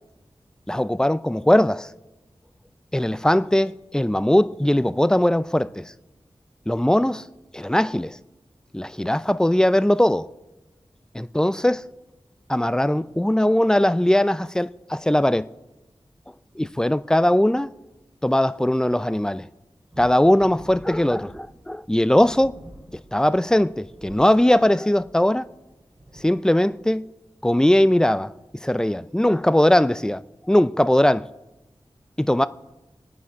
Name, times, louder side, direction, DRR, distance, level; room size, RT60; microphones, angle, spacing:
voice 1, 0.7-1.9 2.9-5.9 6.7-7.2 7.5-8.2 8.7-10.3 11.1-11.8 12.5-15.5 16.6-17.7 18.2-19.4 20.0-22.5 23.1-25.4 26.2-27.1 27.4-28.3 28.6-30.2 30.5-31.3 32.2-32.5, left 1 dB, 5° left, 0.4 m, -20 dB
sound 1, 19.9-27.0 28.0-28.1 28.4-28.6 29.3-29.4, right 1 dB, 30° right, 2.5 m, -47 dB
26.5 x 9.5 x 3.6 m
wide cardioid pair, 65°, 10 cm